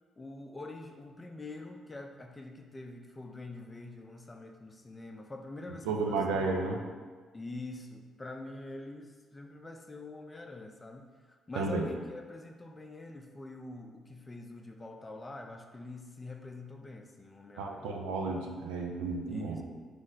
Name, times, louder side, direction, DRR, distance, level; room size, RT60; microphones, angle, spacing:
voice 1, 0.2-6.4 7.3-11.1 11.5-18.0 19.3-19.6, left 2 dB, 25° left, 4 dB, 0.5 m, -45 dB
voice 2, 5.9-6.8 11.6-11.9 17.6-19.6, right 3 dB, 90° right, 1 dB, 0.4 m, -32 dB
4.9 x 2.1 x 3.9 m, 1.5 s
supercardioid pair, 60°, 0 cm